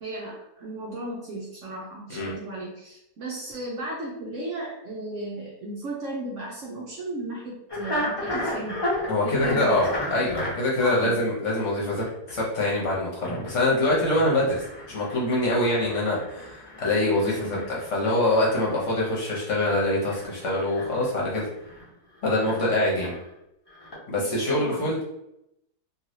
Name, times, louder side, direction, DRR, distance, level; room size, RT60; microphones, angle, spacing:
voice 1, 0.0-8.8 9.2-9.8 10.8-11.2 17.2-17.6 24.2-24.9, right 2 dB, 60° right, -3 dB, 0.8 m, -35 dB
sound 1, 7.7-10.5 11.9-12.5 12.9-13.0 13.2-21.9 22.2-23.3 23.7-23.9, left 1 dB, 25° left, 0.5 m, -35 dB
voice 2, 9.1-21.5 22.2-23.1 24.1-25.0, left 1 dB, 55° left, -4 dB, 1.0 m, -24 dB
3.1 x 2.7 x 2.7 m, 0.82 s
omnidirectional pair, 1.7 m